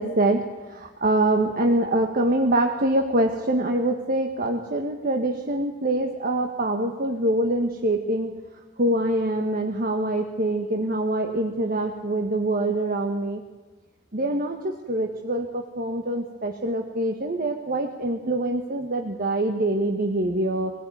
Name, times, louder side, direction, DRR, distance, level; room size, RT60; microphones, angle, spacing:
voice 1, 0.0-8.4 8.8-13.4 14.1-20.7, right 1 dB, 45° right, 3 dB, 1.5 m, -24 dB
23.5 x 16.0 x 9.4 m, 1.3 s
head